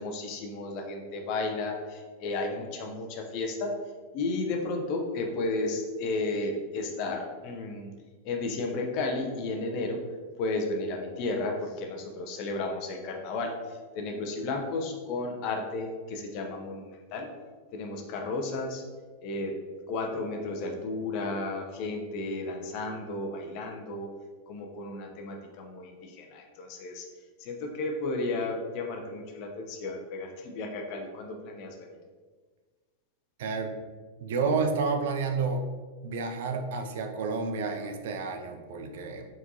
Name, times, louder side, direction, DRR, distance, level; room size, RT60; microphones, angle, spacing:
voice 1, 0.0-3.8 4.1-7.9 8.2-10.0 10.4-17.3 17.7-18.8 19.2-19.6 19.9-24.1 24.5-27.1 27.4-31.9, left 2 dB, 45° left, 3 dB, 0.6 m, -33 dB
voice 2, 33.4-33.8 34.2-35.6 36.0-39.3, right 4 dB, 55° right, 5 dB, 0.4 m, -30 dB
4.4 x 4.1 x 2.6 m, 1.4 s
figure-of-eight pair, 90°, 0 cm